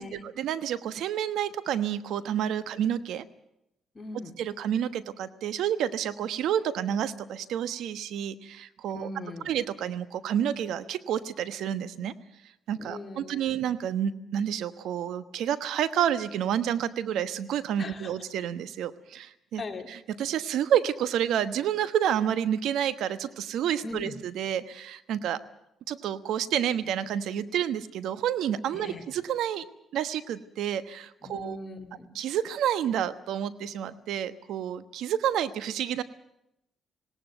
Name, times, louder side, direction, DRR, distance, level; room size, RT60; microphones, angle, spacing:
voice 1, 0.0-3.3 4.4-9.1 9.4-12.1 12.7-19.6 19.9-25.4 25.9-29.7 29.9-31.6 32.1-36.0, right 9 dB, 80° right, 14 dB, 1.1 m, -29 dB
voice 2, 3.9-4.4 8.9-9.5 12.8-13.6 17.8-18.1 19.6-19.9 23.8-24.2 28.7-29.2 31.2-32.1, left 2 dB, 30° left, 4 dB, 3.2 m, -40 dB
19.5 x 18.0 x 9.0 m, 0.81 s
cardioid pair, 90°, 0 cm